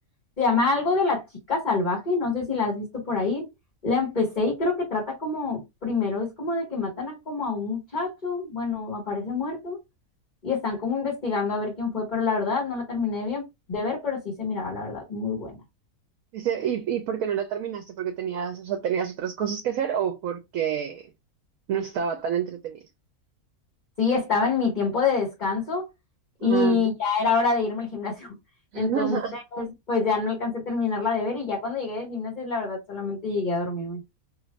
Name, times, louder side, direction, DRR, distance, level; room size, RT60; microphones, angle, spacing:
voice 1, 0.4-3.5 3.8-9.8 10.4-15.6 24.0-25.8 26.4-28.3 28.7-34.0, left 4 dB, 30° left, 1.4 m, -26 dB
voice 2, 16.3-21.0 21.7-22.8 26.4-26.8 28.7-29.3, right 8 dB, 70° right, 1.0 m, -28 dB
2.9 x 2.5 x 3.1 m
omnidirectional pair, 1.6 m